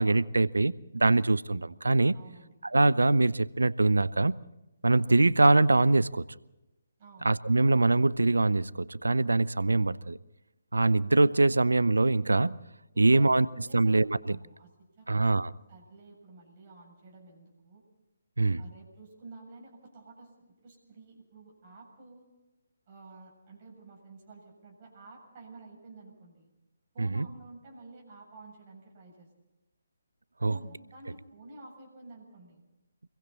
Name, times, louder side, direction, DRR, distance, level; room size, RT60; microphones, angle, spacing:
voice 1, 0.0-2.2 2.7-4.4 4.8-6.2 7.2-10.2 10.7-12.6 13.0-13.5 13.7-14.4 15.1-15.5 18.4-18.6 27.0-27.3 30.4-30.5, right 2 dB, 70° right, 0.7 m, -23 dB
voice 2, 2.1-2.5 7.0-7.3 12.9-14.7 15.0-15.3 15.7-17.8 18.6-22.3 22.9-26.5 26.9-29.3 30.4-32.6, right 2 dB, 35° right, 7.4 m, -51 dB
28.0 x 22.5 x 4.2 m
figure-of-eight pair, 140°, 0 cm